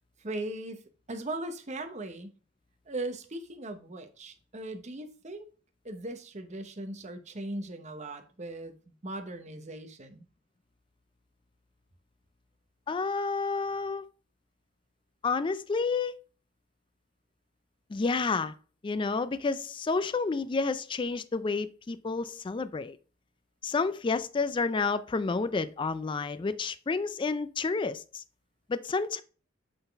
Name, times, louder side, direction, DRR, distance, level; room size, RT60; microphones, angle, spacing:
voice 1, 0.2-0.8 1.1-2.3 2.9-5.5 5.8-8.7 9.0-10.2, right 2 dB, 35° right, 0.8 m, -38 dB
voice 2, 12.9-14.1 15.2-16.1 17.9-18.5 18.8-23.0 23.6-28.2 28.7-29.2, left 4 dB, 25° left, 0.3 m, -30 dB
7.9 x 3.9 x 3.4 m
head